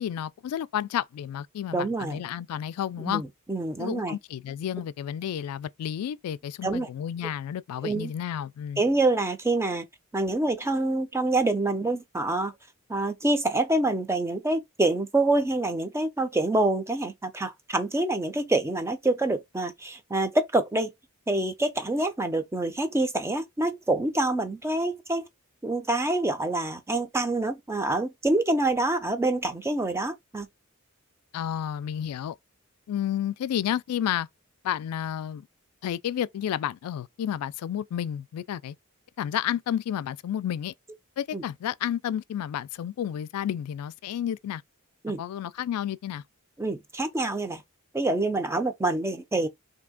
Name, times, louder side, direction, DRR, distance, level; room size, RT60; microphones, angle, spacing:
voice 1, 0.0-3.2 3.8-8.8 31.3-32.4 32.9-34.3 34.6-35.5 35.8-38.8 39.2-40.7 41.2-44.6 45.2-46.2, left 10 dB, 80° left, 0.3 m, -31 dB
voice 2, 1.7-2.2 3.0-4.2 6.6-6.9 7.8-8.1 8.8-9.8 10.1-12.5 12.9-20.9 21.3-25.3 25.6-30.5 41.3-41.4 45.0-45.2 46.6-47.6 47.9-49.5, right 2 dB, 10° right, 0.5 m, -26 dB
3.3 x 2.7 x 3.6 m
head